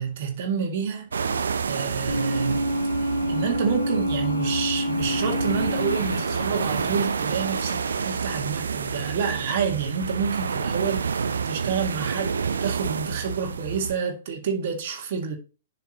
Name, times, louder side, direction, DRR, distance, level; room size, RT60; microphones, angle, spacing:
voice 1, 0.0-2.7 3.0-15.4, right 6 dB, 45° right, 1.9 m, -29 dB
sound 1, 1.1-14.0, right 6 dB, 65° right, 0.7 m, -29 dB
sound 2, 2.1-8.4, equal, 90° left, 1.6 m, -28 dB
10.0 x 6.0 x 3.0 m
figure-of-eight pair, 115°, 0 cm